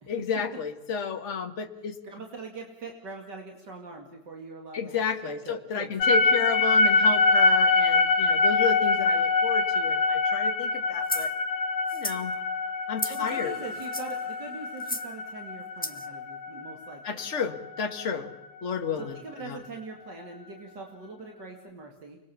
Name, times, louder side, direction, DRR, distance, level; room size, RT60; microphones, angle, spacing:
voice 1, 0.1-2.0 4.7-11.3 11.9-12.4 12.9-13.5 17.0-18.3 18.6-19.6, left 6 dB, 40° left, 5 dB, 1.9 m, -32 dB
voice 2, 2.0-5.9 13.1-17.2 18.9-22.2, right 3 dB, 75° right, 2 dB, 3.0 m, -42 dB
sound 1, 6.0-18.2, left 3 dB, 70° left, 1.6 m, -25 dB
sound 2, 11.1-11.3 11.9-12.2 13.0-13.3 13.8-14.2 14.8-15.1 15.8-16.1, left 1 dB, 10° left, 0.5 m, -34 dB
30.0 x 20.5 x 7.1 m, 1.0 s
omnidirectional pair, 1.9 m